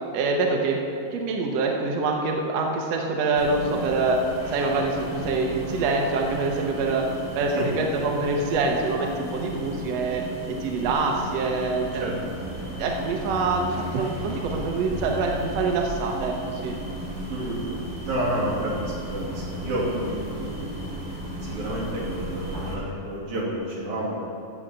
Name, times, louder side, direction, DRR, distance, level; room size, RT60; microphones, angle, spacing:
voice 1, 0.1-0.8 1.1-4.2 4.5-7.0 7.3-10.2 10.5-12.1 12.8-16.7 17.7-17.8, right 3 dB, 75° right, 1 dB, 1.5 m, -25 dB
sound 1, 3.3-22.8, equal, 30° right, 0.4 m, -34 dB
voice 2, 17.3-20.6 21.4-24.2, right 1 dB, 50° right, -6 dB, 3.7 m, -30 dB
14.0 x 5.1 x 7.5 m, 2.7 s
omnidirectional pair, 4.4 m